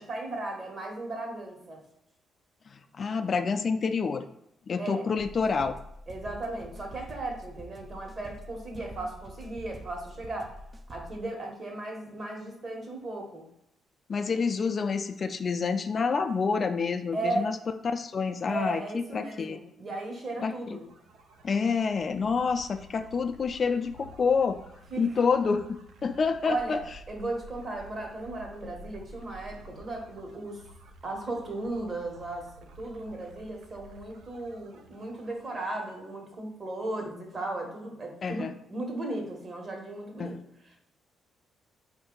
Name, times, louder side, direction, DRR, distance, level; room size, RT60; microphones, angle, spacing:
voice 1, 0.1-1.8 4.8-5.1 6.1-10.5 10.9-13.5 17.1-17.5 18.5-20.9 24.9-25.2 26.4-30.6 31.0-40.4 40.6-40.8, right 2 dB, 40° right, 1 dB, 1.3 m, -36 dB
voice 2, 3.0-4.3 4.7-5.8 14.1-17.6 17.8-19.6 20.4-20.8 21.4-24.6 25.0-26.8 38.2-38.5 40.2-40.4, left 5 dB, 45° left, 9 dB, 0.3 m, -28 dB
sound 1, 5.2-11.2, right 1 dB, 25° right, 0.5 m, -46 dB
sound 2, 20.4-36.1, equal, 85° right, 0.5 m, -52 dB
4.4 x 2.6 x 3.8 m, 0.80 s
cardioid pair, 90°, 0 cm